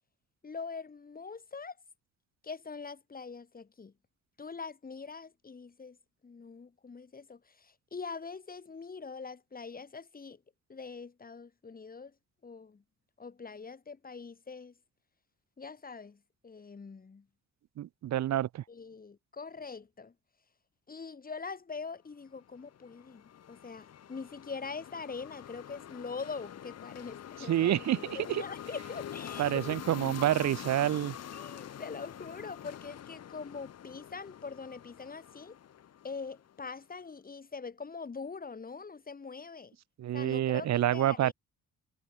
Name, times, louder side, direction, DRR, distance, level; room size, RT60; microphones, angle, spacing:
voice 1, 0.4-1.8 2.4-3.9 4.4-6.0 6.2-10.4 10.7-12.1 12.4-12.8 13.2-14.7 15.6-17.3 18.7-20.1 20.9-27.8 28.1-29.8 31.3-35.6 36.0-39.8 40.1-41.3, left 5 dB, 30° left, 2.6 m, -43 dB
voice 2, 17.8-18.6 27.5-28.4 29.4-31.1 40.0-41.3, right 12 dB, 65° right, 1.0 m, -28 dB
sound 1, 22.4-36.7, left 10 dB, 55° left, 1.6 m, -45 dB
cardioid pair, 90°, 30 cm